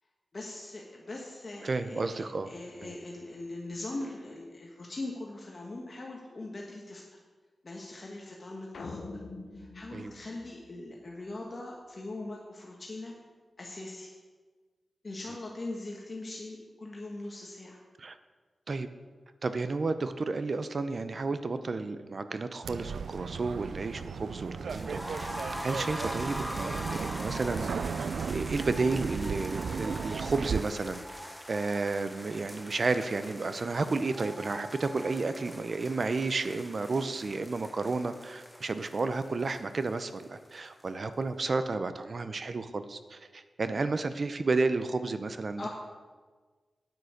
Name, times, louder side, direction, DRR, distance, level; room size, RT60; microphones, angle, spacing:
voice 1, 0.3-7.2 7.6-9.0 9.5-13.1 13.6-14.1 15.0-17.8 45.6-45.7, left 2 dB, 40° left, -1 dB, 1.5 m, -41 dB
voice 2, 1.6-2.5 2.8-2.9 9.9-10.1 18.0-18.2 18.7-18.9 19.4-25.3 25.6-27.7 28.3-31.0 31.5-45.7, right 3 dB, 50° right, 11 dB, 0.7 m, -32 dB
sound 1, 8.7-11.2, left 3 dB, 75° left, 1.1 m, -44 dB
sound 2, 22.6-30.6, right 6 dB, 85° right, 0.4 m, -35 dB
sound 3, 24.7-40.5 40.8-40.9 41.2-41.3, equal, ahead, 1.0 m, -42 dB
9.6 x 8.5 x 6.5 m, 1.4 s
wide cardioid pair, 100°, 0 cm